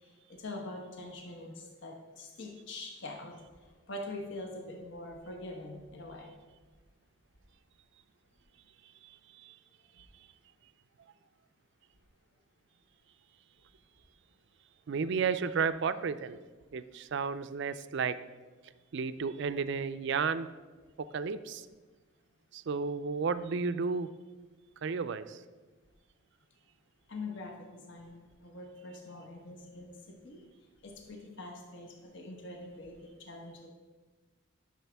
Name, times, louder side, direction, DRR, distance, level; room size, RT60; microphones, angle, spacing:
voice 1, 0.3-3.4 3.9-6.4 27.1-29.9 30.2-30.4 30.8-33.7, left 2 dB, 55° left, 1.1 m, -44 dB
voice 2, 14.9-16.4 16.7-18.2 18.9-20.5 21.1-21.7 22.5-24.1 24.8-25.4, right 5 dB, 55° right, 0.4 m, -32 dB
12.0 x 6.3 x 3.5 m
head